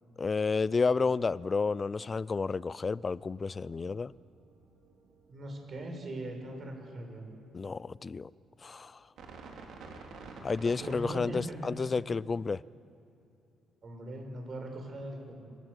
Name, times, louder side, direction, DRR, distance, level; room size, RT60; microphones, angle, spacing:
voice 1, 0.2-4.1 7.5-8.3 8.6-9.0 10.4-12.6, left 4 dB, 35° left, 0.4 m, -31 dB
sound 1, 3.0-7.2 9.2-11.0, right 4 dB, 80° right, 3.7 m, -51 dB
voice 2, 5.3-7.3 10.6-11.6 13.8-15.3, right 1 dB, 45° right, 5.7 m, -40 dB
26.5 x 13.5 x 8.1 m
cardioid pair, 90°, 0 cm